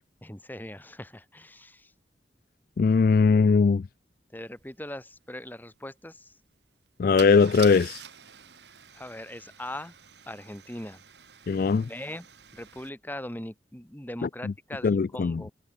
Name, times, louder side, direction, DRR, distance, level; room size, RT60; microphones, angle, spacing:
voice 1, 0.2-1.9 4.3-6.3 8.9-9.9 10.3-11.0 11.9-12.3 12.5-15.5, left 1 dB, 10° left, 2.2 m, -40 dB
voice 2, 2.8-3.9 7.0-8.0 11.5-11.9 14.2-14.5 14.8-15.4, left 5 dB, 50° left, 0.3 m, -21 dB
Car / Engine starting / Idling, 4.6-4.7 4.9-5.2 7.2-12.9, right 10 dB, 70° right, 2.1 m, -46 dB
head